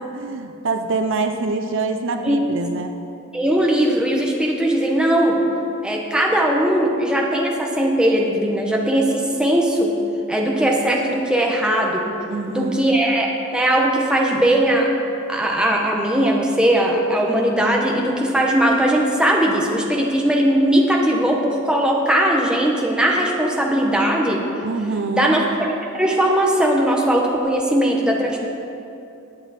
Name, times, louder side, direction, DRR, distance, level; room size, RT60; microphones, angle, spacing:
voice 1, 0.0-3.0 12.3-13.0 24.6-25.4, right 3 dB, 65° right, 6 dB, 0.7 m, -25 dB
voice 2, 3.3-5.4 5.8-10.0 10.3-12.1 12.5-14.9 15.3-24.4 25.1-25.5 25.9-28.4, right 1 dB, 5° right, -1 dB, 1.5 m, -19 dB
19.5 x 8.0 x 4.5 m, 2.7 s
head